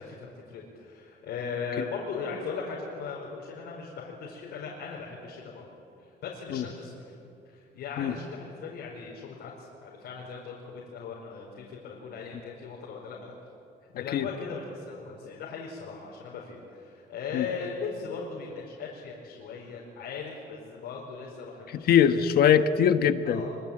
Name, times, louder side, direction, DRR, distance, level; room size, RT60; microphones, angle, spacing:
voice 1, 0.0-5.7 6.0-7.1 7.5-13.3 14.0-21.9 23.2-23.6, left 5 dB, 90° left, -3 dB, 5.1 m, -38 dB
voice 2, 21.9-23.4, left 8 dB, 65° left, 9 dB, 1.4 m, -21 dB
25.5 x 24.5 x 8.9 m, 2.6 s
cardioid pair, 165°, 17 cm